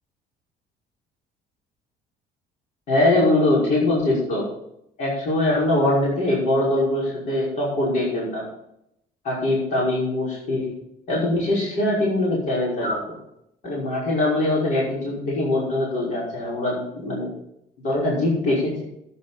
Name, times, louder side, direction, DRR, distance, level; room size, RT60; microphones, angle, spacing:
voice 1, 2.9-4.5 5.0-8.5 9.2-10.7 11.1-13.2 13.6-17.3 17.8-18.8, left 1 dB, 50° left, -6 dB, 5.5 m, -22 dB
12.5 x 9.8 x 4.3 m, 0.78 s
cardioid pair, 170°, 16 cm